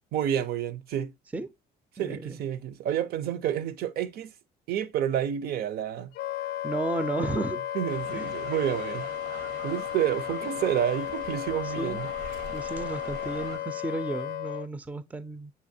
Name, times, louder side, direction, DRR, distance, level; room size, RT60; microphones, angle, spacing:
voice 1, 0.1-1.1 2.0-4.3 4.7-6.1 7.2-7.3 7.7-9.1 9.6-12.1, right 10 dB, 65° right, 0.5 m, -29 dB
voice 2, 2.0-2.4 6.6-7.6 8.1-8.3 11.6-12.0 12.5-15.5, right 2 dB, 10° right, 0.4 m, -33 dB
Wind instrument woodwind instrument, 6.1-14.7, left 11 dB, 70° left, 0.4 m, -34 dB
sound 1, 7.9-13.6, right 4 dB, 90° right, 1.3 m, -44 dB
6.8 x 2.8 x 2.6 m
cardioid pair, 110°, 17 cm